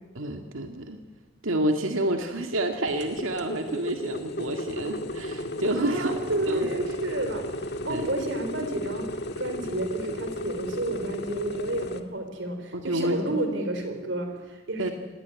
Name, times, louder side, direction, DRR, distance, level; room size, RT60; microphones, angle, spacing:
voice 1, 0.1-1.0 1.4-6.1 6.5-6.7 7.9-8.1 12.7-13.4 14.8-14.9, right 1 dB, 90° right, 4 dB, 2.0 m, -29 dB
sound 1, 2.9-12.0, left 1 dB, 55° left, 1.9 m, -34 dB
voice 2, 5.7-14.9, right 1 dB, 60° right, 5 dB, 3.7 m, -31 dB
26.0 x 20.0 x 9.4 m, 1.3 s
head